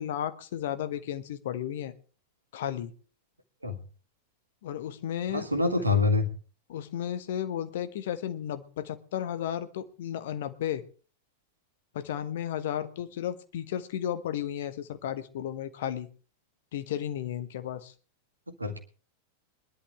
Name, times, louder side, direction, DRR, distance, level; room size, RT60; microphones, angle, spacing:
voice 1, 0.0-1.9 2.5-2.9 4.6-5.9 6.7-10.8 11.9-16.1 16.7-17.9, left 10 dB, 55° left, 11 dB, 1.2 m, -34 dB
voice 2, 5.3-6.3 18.6-18.8, left 3 dB, 85° right, 6 dB, 1.9 m, -25 dB
21.0 x 11.5 x 3.5 m, 0.38 s
figure-of-eight pair, 90°, 0 cm